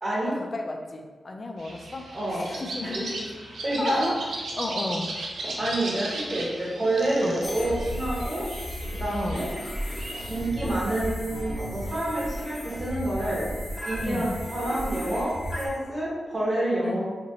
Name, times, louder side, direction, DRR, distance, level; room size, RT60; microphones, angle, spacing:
voice 1, 0.0-0.3 2.1-2.5 2.8-3.2 3.6-4.1 5.4-8.5 9.0-9.5 10.3-13.5 13.8-17.0, right 1 dB, 40° right, -6 dB, 1.1 m, -28 dB
voice 2, 0.5-4.1 4.5-5.1 7.2-7.4 9.1-9.5 14.0-14.3 16.8-17.0, left 2 dB, 40° left, 3 dB, 0.4 m, -33 dB
sound 1, 1.6-10.5, right 2 dB, 90° right, 0.5 m, -37 dB
sound 2, 7.4-15.7, equal, 15° left, 0.9 m, -34 dB
2.9 x 2.5 x 2.7 m, 1.4 s
cardioid pair, 75°, 0 cm